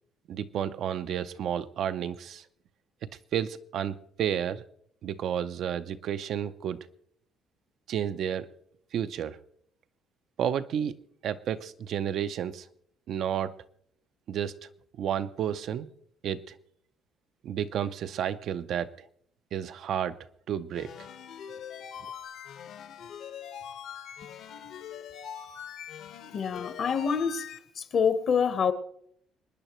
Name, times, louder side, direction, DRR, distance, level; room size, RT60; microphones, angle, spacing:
voice 1, 0.3-2.4 3.3-4.6 5.0-6.8 7.9-8.5 8.9-9.4 10.4-12.6 13.1-13.5 14.3-14.5 15.0-15.9 16.2-16.4 17.4-18.9 19.5-20.2 20.5-20.9, right 9 dB, 55° right, 0.5 m, -31 dB
sound 1, 20.7-27.6, left 8 dB, 65° left, 1.3 m, -43 dB
voice 2, 26.3-27.4 27.8-28.7, left 6 dB, 40° left, 1.0 m, -26 dB
26.0 x 9.8 x 3.1 m
cardioid pair, 150°, 0 cm